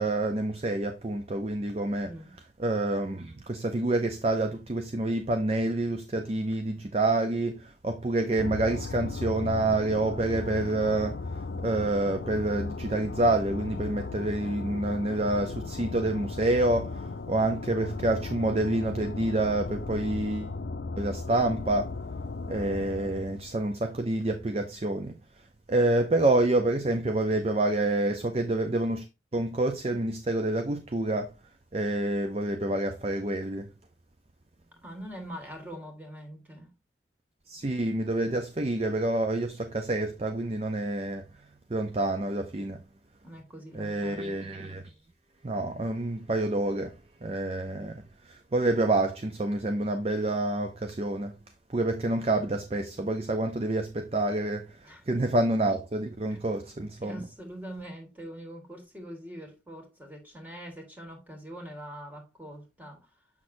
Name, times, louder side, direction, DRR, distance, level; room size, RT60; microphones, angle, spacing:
voice 1, 0.0-2.1 2.6-11.2 11.6-20.5 21.0-21.9 22.5-25.1 25.7-29.1 29.3-31.3 31.7-33.7 37.5-41.2 41.7-42.8 43.7-44.8 45.4-47.0 47.2-51.4 51.7-54.8 55.1-57.2, right 2 dB, 35° right, 0.5 m, -28 dB
voice 2, 2.0-2.4 34.8-36.7 43.2-44.3 54.8-55.1 56.3-56.4 57.0-63.2, equal, 10° right, 1.7 m, -43 dB
sound 1, 8.4-23.5, left 3 dB, 70° left, 0.5 m, -36 dB
7.3 x 6.1 x 2.6 m
head